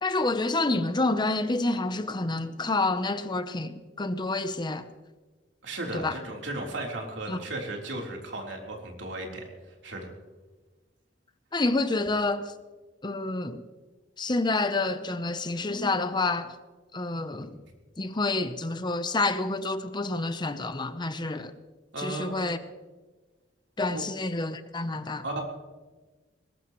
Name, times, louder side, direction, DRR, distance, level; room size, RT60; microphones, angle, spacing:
voice 1, 0.0-4.9 5.9-6.2 7.3-7.4 11.5-12.5 13.0-13.6 14.2-16.6 16.9-17.6 18.0-21.5 22.0-22.6 23.8-25.2, left 2 dB, 25° left, 0.8 m, -28 dB
voice 2, 5.6-9.5 9.8-10.1 21.9-22.4 23.9-24.1 25.2-25.4, right 2 dB, 75° right, 3.7 m, -35 dB
21.5 x 19.5 x 3.1 m
head